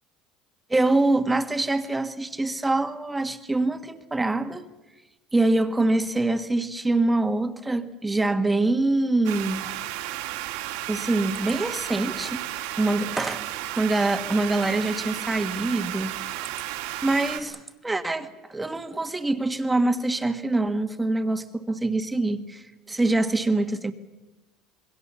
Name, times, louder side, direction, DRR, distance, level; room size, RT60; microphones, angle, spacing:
voice 1, 0.7-4.7 5.3-9.7 10.9-12.4 12.8-13.4 13.8-16.2 17.0-23.9, right 2 dB, 10° right, 8 dB, 1.5 m, -25 dB
sound 1, 9.2-17.4, right 14 dB, 85° right, 3.1 m, -33 dB
27.0 x 22.0 x 7.1 m, 1.1 s
cardioid pair, 135°, 0 cm